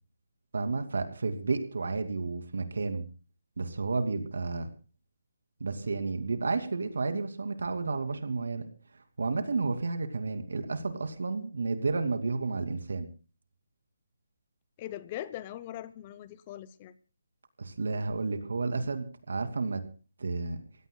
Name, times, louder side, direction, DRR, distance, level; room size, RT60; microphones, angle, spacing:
voice 1, 0.5-3.0 3.6-4.7 5.6-8.6 9.2-13.1 17.6-19.8 20.2-20.6, right 3 dB, 80° right, 7 dB, 2.6 m, -31 dB
voice 2, 14.8-16.9, left 13 dB, 25° left, 16 dB, 0.7 m, -41 dB
26.0 x 16.5 x 2.3 m, 0.36 s
hypercardioid pair, 165°, 0 cm